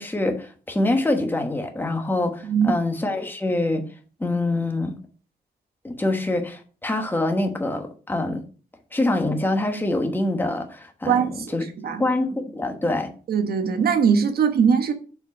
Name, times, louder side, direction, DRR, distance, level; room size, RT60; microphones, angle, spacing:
voice 1, 0.0-3.8 4.2-4.9 5.8-8.4 8.9-11.6 12.0-13.1, left 2 dB, 10° left, 1.1 m, -25 dB
voice 2, 2.4-2.7 11.1-11.4 11.8-12.0 13.3-14.9, right 6 dB, 70° right, 1.2 m, -20 dB
6.8 x 4.5 x 5.9 m
wide cardioid pair, 175°, 16 cm